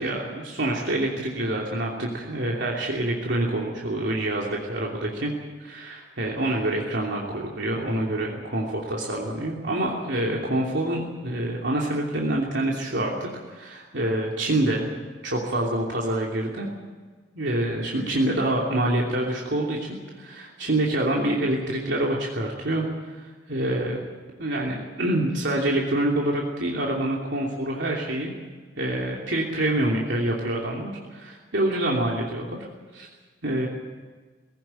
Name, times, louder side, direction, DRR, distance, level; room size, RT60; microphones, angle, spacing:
voice 1, 0.0-5.3 5.6-14.9 15.2-16.7 17.3-24.0 24.4-28.3 28.8-32.6 32.9-33.1 33.4-33.7, right 1 dB, 75° right, -2 dB, 3.0 m, -26 dB
19.5 x 17.5 x 9.0 m, 1.4 s
head